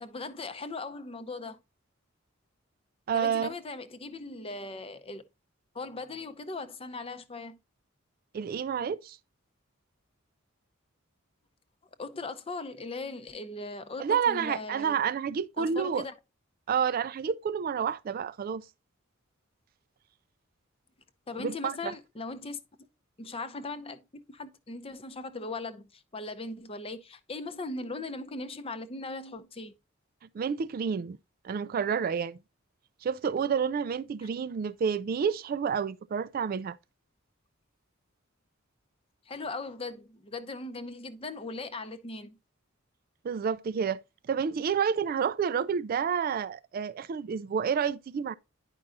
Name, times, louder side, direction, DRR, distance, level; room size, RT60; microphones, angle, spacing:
voice 1, 0.0-1.6 3.1-5.2 5.7-7.6 12.0-15.0 15.6-16.1 21.3-22.6 23.2-29.7 34.2-34.3 39.3-42.4, left 3 dB, 30° left, 0.6 m, -39 dB
voice 2, 3.1-3.5 8.3-9.2 14.0-16.0 16.7-18.6 21.4-21.9 30.3-31.2 31.4-32.4 33.0-36.8 43.2-44.0 44.3-48.3, right 7 dB, 45° right, 0.3 m, -29 dB
9.8 x 5.3 x 2.5 m
head